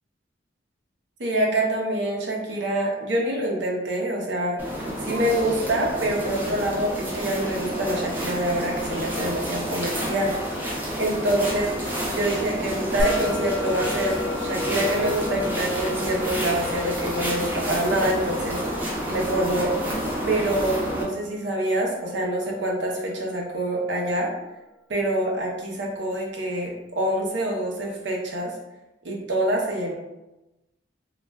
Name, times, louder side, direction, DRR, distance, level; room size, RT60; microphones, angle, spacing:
voice 1, 1.2-4.6 5.0-10.4 11.0-11.7 12.1-19.9 20.3-24.3 24.9-28.5 29.0-29.9, right 1 dB, 65° right, -1 dB, 0.6 m, -26 dB
sound 1, 4.6-21.0, equal, 10° right, 0.5 m, -29 dB
Musical instrument, 13.0-23.6, left 4 dB, 80° left, 0.3 m, -36 dB
2.3 x 2.1 x 3.3 m, 1.0 s
head